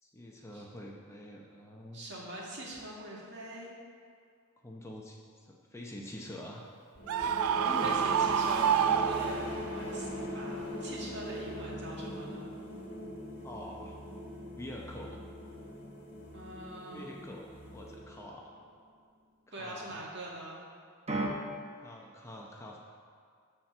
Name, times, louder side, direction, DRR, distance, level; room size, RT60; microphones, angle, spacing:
voice 1, 0.0-2.1 4.6-6.6 7.6-8.0 13.4-14.0 14.6-15.2 16.9-18.7 19.5-20.0 21.8-22.8, left 1 dB, 15° left, -1 dB, 0.8 m, -46 dB
voice 2, 1.9-3.7 7.4-12.5 16.3-17.2 19.5-20.6, right 1 dB, 50° right, -4 dB, 2.1 m, -43 dB
sound 1, 7.0-18.5, left 1 dB, 50° left, 1.7 m, -41 dB
Screaming, 7.1-9.8, right 8 dB, 70° right, 0.3 m, -28 dB
sound 2, 8.1-19.6 21.1-21.3, right 1 dB, 30° right, 0.9 m, -46 dB
13.0 x 4.4 x 6.7 m, 2.2 s
head